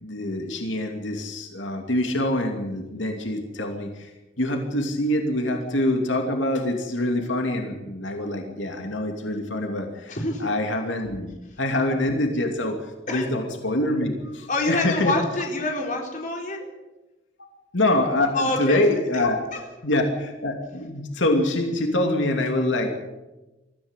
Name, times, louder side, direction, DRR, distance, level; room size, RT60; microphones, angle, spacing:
voice 1, 0.0-4.1 4.4-12.8 13.1-15.2 17.7-19.4 19.8-22.9, left 1 dB, 90° left, 3 dB, 2.8 m, -25 dB
voice 2, 10.1-10.5 13.1-13.3 14.5-16.6 18.3-18.8, left 2 dB, 45° left, 1 dB, 4.3 m, -26 dB
23.5 x 15.0 x 8.3 m, 1.1 s
head